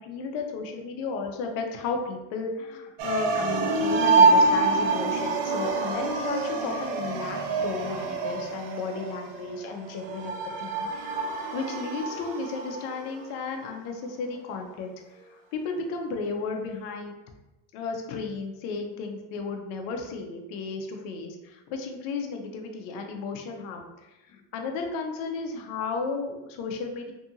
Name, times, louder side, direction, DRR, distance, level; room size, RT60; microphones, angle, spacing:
voice 1, 0.0-11.1 11.5-17.2 17.7-27.1, left 4 dB, 65° left, 3 dB, 0.6 m, -34 dB
sound 1, 3.0-13.3, right 3 dB, 85° right, 0.5 m, -26 dB
2.7 x 2.4 x 2.7 m, 1.0 s
supercardioid pair, 130°, 35 cm